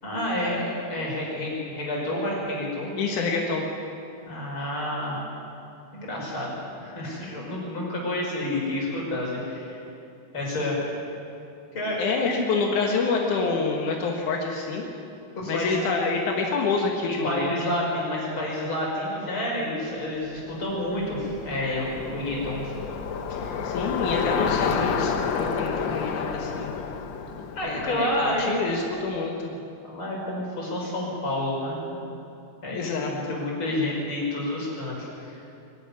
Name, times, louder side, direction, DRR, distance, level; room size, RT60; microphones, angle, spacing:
voice 1, 0.0-2.9 4.2-5.2 5.9-9.8 10.3-11.0 11.7-12.4 15.3-15.8 17.2-22.7 23.3-23.5 27.6-28.6 29.9-32.0 32.6-35.4, left 1 dB, 45° left, -4 dB, 6.4 m, -29 dB
voice 2, 3.0-3.7 12.0-14.8 15.5-17.7 23.6-26.7 27.6-29.5 32.7-33.4, left 4 dB, 90° left, 0 dB, 3.1 m, -27 dB
Bicycle, 20.4-28.7, left 6 dB, 60° left, 1.2 m, -30 dB
23.0 x 12.0 x 9.8 m, 2.7 s
omnidirectional pair, 3.4 m